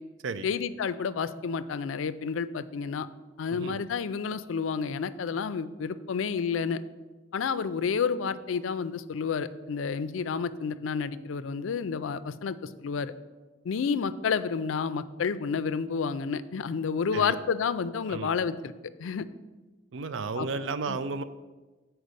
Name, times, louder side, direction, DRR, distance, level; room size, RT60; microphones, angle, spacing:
voice 1, 0.4-3.1 3.4-6.8 7.3-13.1 13.6-18.7 19.0-19.3 20.4-20.5 20.9-21.0, left 6 dB, 85° left, 14 dB, 0.4 m, -30 dB
voice 2, 19.9-21.2, right 4 dB, 75° right, 12 dB, 0.5 m, -33 dB
8.1 x 4.6 x 6.3 m, 1.2 s
head